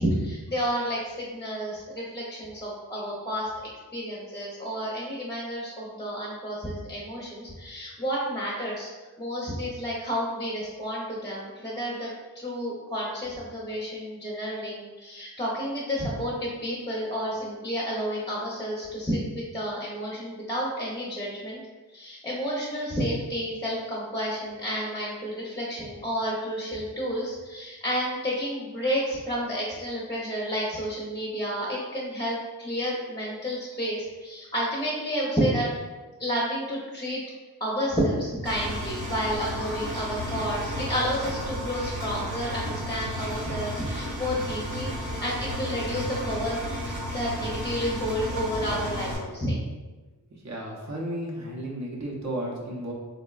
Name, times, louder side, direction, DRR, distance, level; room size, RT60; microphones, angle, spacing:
voice 1, 0.0-3.5 3.9-8.9 9.2-21.6 21.9-35.7 36.2-37.2 37.6-49.6, equal, 10° left, -5 dB, 0.6 m, -30 dB
Engine, 38.4-49.2, equal, 80° right, 1.0 m, -33 dB
voice 2, 50.4-52.9, right 1 dB, 45° right, -2 dB, 0.7 m, -33 dB
3.7 x 2.1 x 2.3 m, 1.2 s
wide cardioid pair, 70°, 38 cm